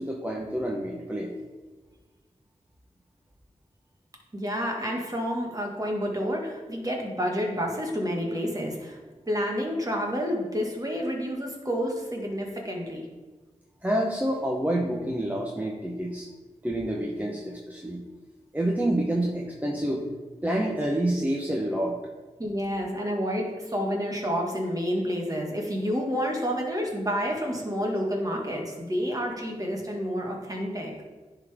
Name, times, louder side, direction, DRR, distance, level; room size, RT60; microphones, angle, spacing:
voice 1, 0.0-1.3 13.8-16.3 16.6-18.0 18.5-20.0 20.4-22.0, right 1 dB, 10° right, -2 dB, 0.9 m, -28 dB
voice 2, 4.3-9.0 9.3-13.1 22.4-30.9, equal, 25° right, 0 dB, 1.6 m, -29 dB
10.5 x 3.9 x 3.5 m, 1.3 s
wide cardioid pair, 55°, 13 cm